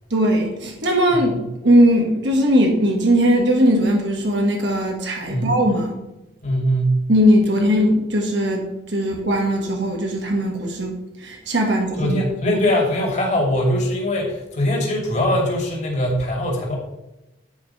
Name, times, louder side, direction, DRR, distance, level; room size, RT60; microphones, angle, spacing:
voice 1, 0.1-6.0 7.1-12.1, equal, 75° right, 1 dB, 1.5 m, -19 dB
voice 2, 1.1-1.4 5.3-5.5 6.4-7.0 12.0-16.8, equal, 40° left, -1 dB, 2.5 m, -21 dB
9.7 x 5.2 x 5.6 m, 0.96 s
head